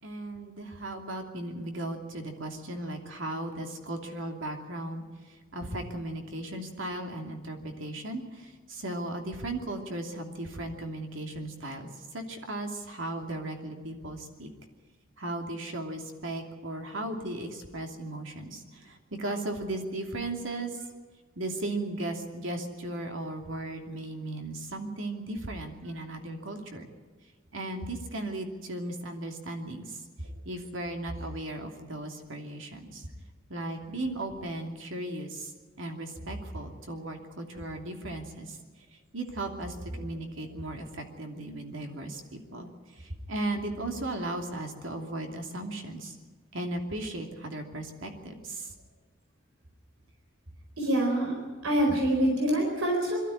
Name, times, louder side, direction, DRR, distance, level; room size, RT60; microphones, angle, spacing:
voice 1, 0.0-14.5 15.2-20.9 21.4-26.8 27.5-30.0 30.4-33.1 33.5-35.5 35.8-38.6 39.1-46.2 46.5-48.7, right 1 dB, 65° right, 3 dB, 2.8 m, -36 dB
voice 2, 50.8-51.3 51.6-53.2, right 1 dB, 90° right, 1 dB, 4.4 m, -25 dB
22.5 x 13.5 x 9.8 m, 1.5 s
head